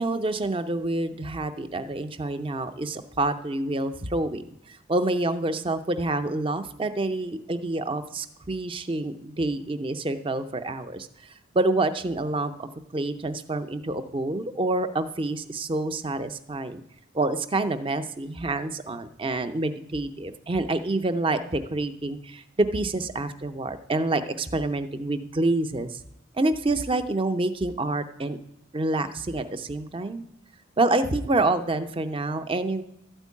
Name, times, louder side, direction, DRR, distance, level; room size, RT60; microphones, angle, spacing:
voice 1, 0.0-16.8 17.1-26.0 26.3-28.4 28.7-30.2 30.8-32.8, right 2 dB, 25° right, 10 dB, 0.5 m, -27 dB
12.5 x 4.5 x 8.3 m, 0.83 s
head